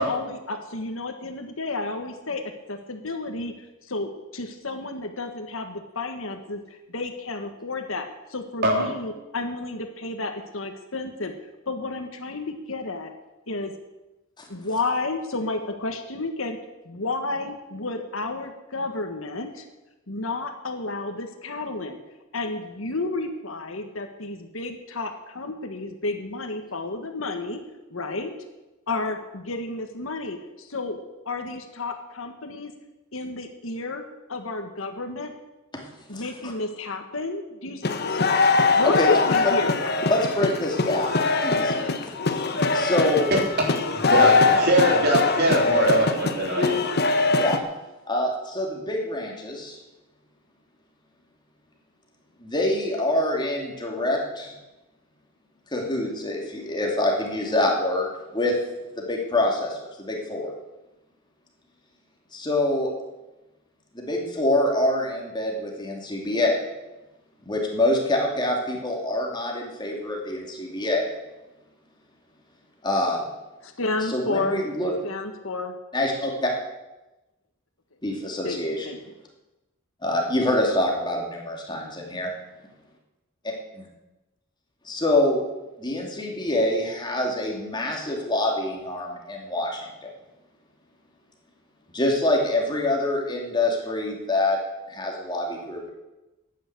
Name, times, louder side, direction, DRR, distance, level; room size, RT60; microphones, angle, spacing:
voice 1, 0.0-2.4 2.7-3.5 3.8-6.6 6.9-11.3 11.7-13.1 13.5-13.7 14.5-16.6 16.8-19.6 20.1-22.0 22.3-27.6 27.9-28.3 28.9-31.0 31.2-32.7 33.1-34.0 34.3-35.3 36.1-38.1 38.7-39.8 73.6-74.6 75.0-75.7 78.4-79.0, left 2 dB, 70° left, 5 dB, 1.6 m, -31 dB
voice 2, 36.1-36.5 38.8-39.1 40.1-42.1 42.7-43.3 47.4-47.6 48.1-49.8 52.4-54.5 55.7-58.5 59.0-60.5 62.3-62.9 63.9-66.6 67.4-71.1 72.8-73.2 74.1-74.9 75.9-76.5 78.0-78.9 80.0-82.3 83.7-83.9 84.8-85.4 85.8-90.1 91.9-94.6 94.9-95.9, left 1 dB, 20° left, 0 dB, 2.7 m, -25 dB
sound 1, 37.8-47.6, left 3 dB, 50° left, 1.1 m, -22 dB
voice 3, 44.1-46.8, right 1 dB, 50° right, -1 dB, 3.7 m, -22 dB
12.5 x 9.3 x 8.1 m, 1.0 s
head